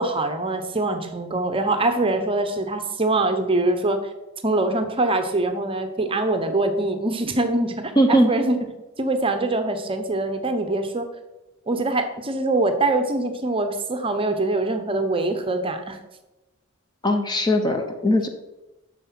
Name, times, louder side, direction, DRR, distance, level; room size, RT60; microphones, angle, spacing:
voice 1, 0.0-4.0 4.4-8.7 9.0-11.1 11.7-16.0, right 2 dB, 25° right, 7 dB, 0.8 m, -23 dB
voice 2, 8.0-8.3 17.0-18.3, equal, 20° left, 5 dB, 0.7 m, -19 dB
7.6 x 6.4 x 6.0 m, 1.0 s
head